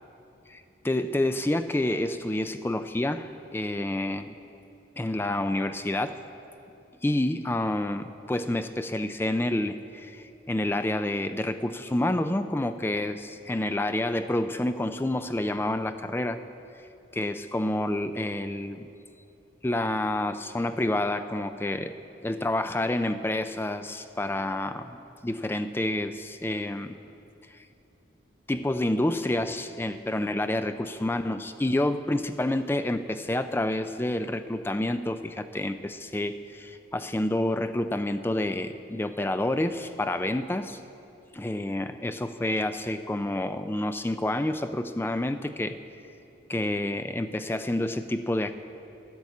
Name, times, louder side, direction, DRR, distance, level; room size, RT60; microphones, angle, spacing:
voice 1, 0.5-4.3 5.0-6.2 7.0-16.4 17.1-18.9 19.6-21.9 22.2-27.0 27.5-27.7 28.5-40.8 41.3-45.8 46.5-48.5, left 1 dB, 10° left, 10 dB, 0.3 m, -28 dB
10.5 x 10.5 x 8.3 m, 2.8 s
head